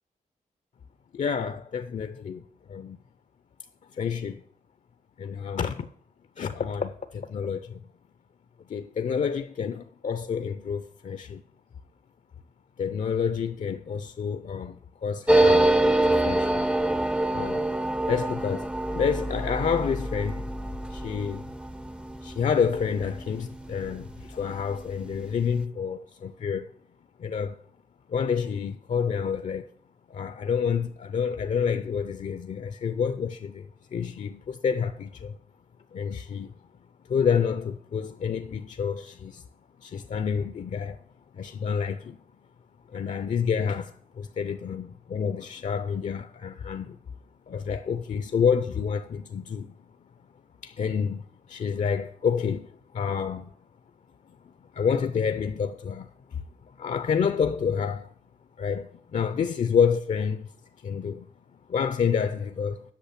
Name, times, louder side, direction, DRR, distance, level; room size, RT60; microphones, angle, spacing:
voice 1, 1.1-2.4 2.7-3.0 3.9-4.4 5.2-5.9 6.4-7.8 8.7-11.4 12.8-15.7 16.0-16.6 17.3-17.7 18.1-20.5 20.9-21.5 22.2-26.7 27.2-27.6 28.1-29.7 30.1-35.3 35.9-36.5 37.1-39.4 39.8-41.0 41.3-42.2 42.9-47.0 47.5-49.8 50.6-52.7 52.9-53.5 54.5-56.4 56.8-58.1 58.6-60.5 60.8-61.3 61.7-62.8, left 6 dB, 55° left, 0.6 m, -28 dB
sound 1, 15.3-24.4 24.7-24.8 25.0-25.6, right 1 dB, 5° right, 0.5 m, -26 dB
8.4 x 6.4 x 8.2 m
cardioid pair, 85°, 14 cm